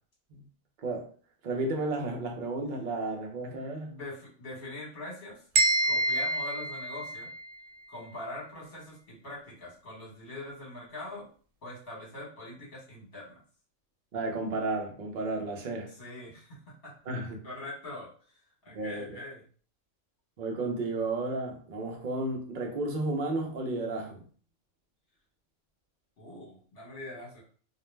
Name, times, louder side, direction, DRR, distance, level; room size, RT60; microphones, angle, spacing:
voice 1, 1.4-3.9 14.1-15.9 17.1-17.4 18.7-19.2 20.4-24.2, right 2 dB, 50° right, 0.6 m, -32 dB
voice 2, 3.9-5.4 5.8-7.3 7.9-11.3 11.6-13.3 15.7-16.6 16.8-16.9 17.4-18.1 18.6-19.4 26.2-27.4, left 2 dB, 50° left, 1.2 m, -43 dB
sound 1, 5.5-7.6, right 2 dB, 80° right, 1.0 m, -27 dB
2.5 x 2.0 x 3.1 m
omnidirectional pair, 1.3 m